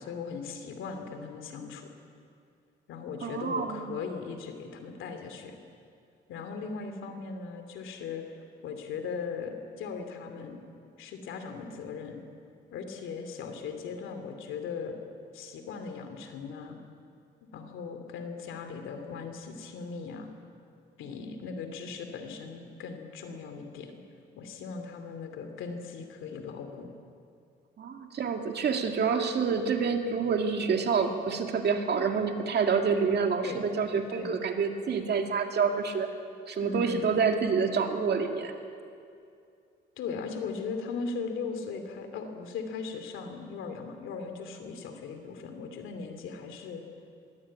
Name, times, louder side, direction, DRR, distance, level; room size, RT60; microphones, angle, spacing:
voice 1, 0.0-1.9 2.9-5.6 6.3-8.2 8.6-10.6 11.0-12.2 12.7-15.0 15.3-16.8 17.5-20.3 21.0-23.9 24.4-26.9 33.4-33.7 34.1-34.3 36.6-37.0 40.0-46.8, left 5 dB, 90° left, 6 dB, 2.6 m, -38 dB
voice 2, 3.2-4.0 27.8-36.1 36.5-38.5, right 5 dB, 55° right, 4 dB, 2.2 m, -27 dB
21.0 x 15.5 x 8.6 m, 2.4 s
cardioid pair, 90°, 20 cm